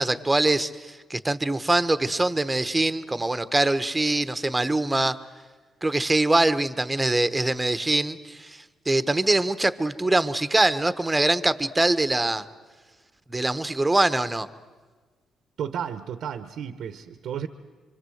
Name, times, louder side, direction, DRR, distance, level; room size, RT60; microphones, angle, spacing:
voice 1, 0.0-5.2 5.8-12.4 13.3-14.5, right 2 dB, 15° right, 12 dB, 1.0 m, -23 dB
voice 2, 15.6-17.5, right 8 dB, 75° right, 10 dB, 1.0 m, -33 dB
26.0 x 25.0 x 7.9 m, 1.4 s
cardioid pair, 90°, 0 cm